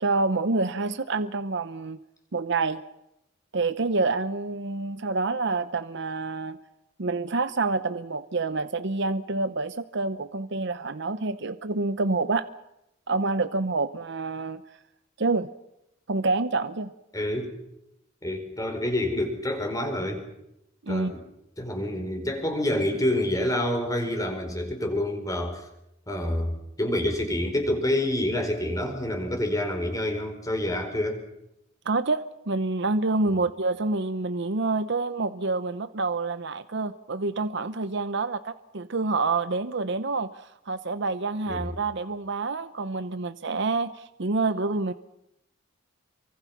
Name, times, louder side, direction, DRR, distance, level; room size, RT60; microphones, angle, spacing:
voice 1, 0.0-2.0 2.3-2.8 3.5-6.6 7.0-12.5 13.1-14.6 15.2-15.5 16.1-16.9 20.8-21.1 31.8-44.9, right 3 dB, 65° right, 12 dB, 0.9 m, -27 dB
voice 2, 17.1-17.5 18.2-20.2 20.9-21.2 21.6-25.7 26.1-31.2 41.5-41.7, left 1 dB, 20° left, 5 dB, 4.8 m, -27 dB
28.0 x 24.5 x 6.0 m, 0.84 s
head